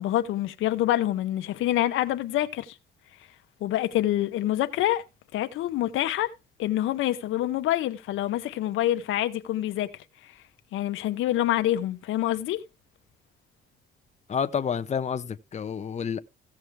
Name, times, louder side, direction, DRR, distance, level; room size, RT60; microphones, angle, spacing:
voice 1, 0.0-2.7 3.6-5.0 5.3-6.3 6.6-9.9 10.7-12.6, left 13 dB, 85° left, 0.9 m, -26 dB
voice 2, 14.3-16.2, left 7 dB, 35° left, 0.8 m, -29 dB
16.0 x 6.3 x 3.4 m
cardioid pair, 90°, 20 cm